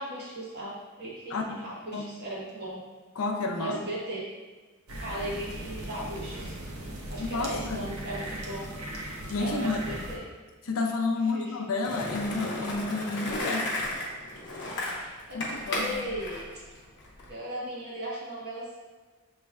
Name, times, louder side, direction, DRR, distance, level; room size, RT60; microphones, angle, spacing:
voice 1, 0.0-2.8 3.6-4.2 5.0-6.5 7.1-8.7 9.4-10.2 11.3-11.7 14.9-16.4 17.3-18.7, right 1 dB, 50° right, -6 dB, 1.3 m, -37 dB
voice 2, 3.2-3.8 7.2-7.9 9.3-9.8 10.6-13.8 15.3-16.0, left 3 dB, 70° left, 3 dB, 0.5 m, -30 dB
sound 1, 4.9-10.2, right 1 dB, 80° right, 0.8 m, -38 dB
Skateboard, 11.8-17.3, left 1 dB, 55° left, 0.9 m, -34 dB
5.9 x 3.1 x 2.3 m, 1.3 s
head